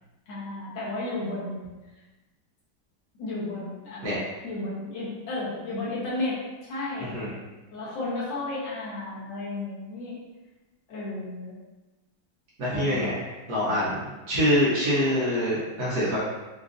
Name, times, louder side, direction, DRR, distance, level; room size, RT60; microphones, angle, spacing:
voice 1, 0.3-1.7 3.2-6.4 6.6-7.1 7.7-10.2 10.9-11.5 12.7-13.0, left 2 dB, 85° left, -7 dB, 1.7 m, -33 dB
voice 2, 7.0-7.3 12.6-16.2, equal, 65° right, -8 dB, 1.4 m, -25 dB
4.8 x 2.5 x 2.4 m, 1.1 s
omnidirectional pair, 1.9 m